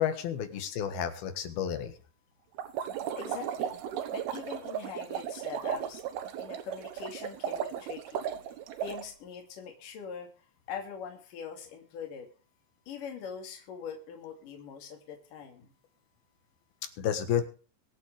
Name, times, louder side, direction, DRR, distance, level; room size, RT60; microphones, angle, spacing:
voice 1, 0.0-1.9 17.0-17.5, left 9 dB, 80° left, 8 dB, 3.5 m, -31 dB
Bubble Long Sequence, 2.6-9.1, right 9 dB, 90° right, 3.1 m, -35 dB
voice 2, 3.2-3.8 4.1-6.0 6.4-8.3 8.8-10.3 10.7-12.3 12.9-15.7, left 7 dB, 60° left, 2 dB, 4.0 m, -42 dB
24.0 x 8.0 x 3.4 m, 0.37 s
omnidirectional pair, 4.3 m